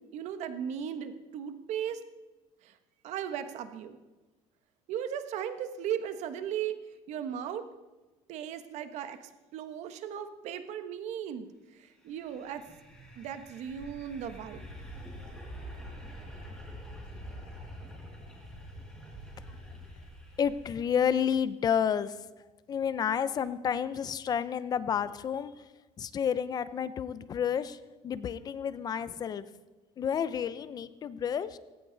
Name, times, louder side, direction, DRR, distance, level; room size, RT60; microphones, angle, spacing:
voice 1, 0.0-2.0 2.6-2.7 3.0-4.0 4.9-6.8 7.1-7.6 8.3-11.5 11.7-12.6 13.2-14.7, right 9 dB, 55° right, 9 dB, 1.3 m, -37 dB
sound 1, 11.9-21.1, equal, 5° left, 4.9 m, -46 dB
voice 2, 20.4-22.2 22.7-25.6 26.0-27.8 28.0-29.5 30.0-31.6, left 8 dB, 30° left, 15 dB, 0.7 m, -30 dB
18.5 x 17.5 x 4.0 m, 1.2 s
cardioid pair, 170°, 14 cm